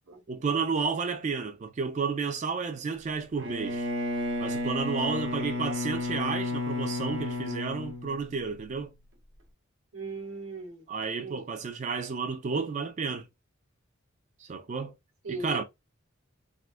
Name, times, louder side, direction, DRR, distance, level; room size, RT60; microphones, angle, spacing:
voice 1, 0.3-3.9 4.4-8.9 10.9-13.2 14.4-14.9 15.3-15.6, right 5 dB, 35° right, 0.3 m, -31 dB
Bowed string instrument, 3.3-8.7, left 2 dB, 65° right, 0.8 m, -32 dB
voice 2, 9.9-10.8 11.2-11.4 15.2-15.6, right 2 dB, 90° right, 1.2 m, -38 dB
3.6 x 2.3 x 2.4 m
head